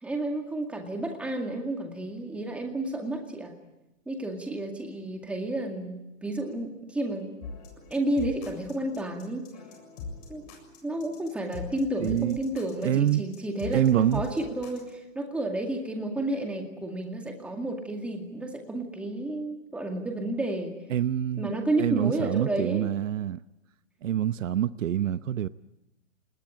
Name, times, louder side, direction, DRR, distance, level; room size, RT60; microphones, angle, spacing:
voice 1, 0.0-3.5 4.1-7.3 7.9-9.5 10.3-10.5 10.8-20.7 21.4-23.0, right 1 dB, 5° right, 2.1 m, -31 dB
sound 1, 7.4-14.9, left 4 dB, 35° left, 7.2 m, -41 dB
voice 2, 12.0-12.4 12.8-13.2 13.7-14.2 20.9-23.4 24.0-25.5, right 10 dB, 75° right, 0.9 m, -26 dB
28.5 x 20.0 x 8.9 m
hypercardioid pair, 165°, 38 cm